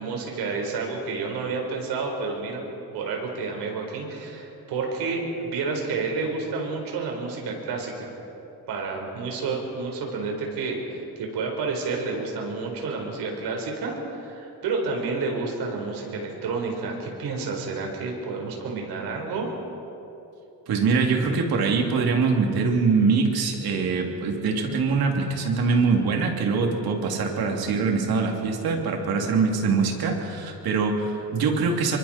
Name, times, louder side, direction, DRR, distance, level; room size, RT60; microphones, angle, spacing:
voice 1, 0.0-2.6 2.9-8.1 8.7-19.5, right 4 dB, 85° right, 1 dB, 4.8 m, -30 dB
voice 2, 20.7-32.0, right 4 dB, 70° right, 1 dB, 3.2 m, -23 dB
27.0 x 24.0 x 4.5 m, 2.9 s
cardioid pair, 145°, 38 cm